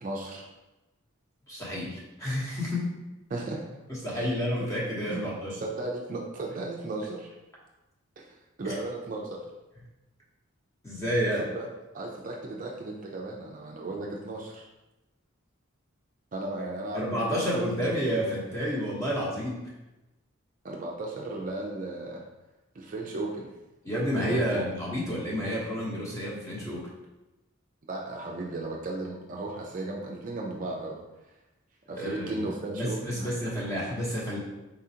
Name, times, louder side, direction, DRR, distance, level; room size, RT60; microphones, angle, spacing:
voice 1, 0.0-0.5 3.3-3.7 4.1-4.3 5.1-5.3 5.6-7.3 8.2-9.4 11.4-11.7 11.9-14.6 16.3-17.6 20.6-22.2 22.7-23.5 24.2-24.7 27.8-31.0 31.9-33.3, right 2 dB, 40° right, -1 dB, 0.4 m, -35 dB
voice 2, 1.5-2.9 3.9-5.6 8.6-8.8 10.8-11.5 16.9-19.6 23.8-26.9 32.0-32.5 32.8-34.4, equal, 15° left, -5 dB, 0.9 m, -30 dB
4.2 x 3.7 x 2.8 m, 1.0 s
head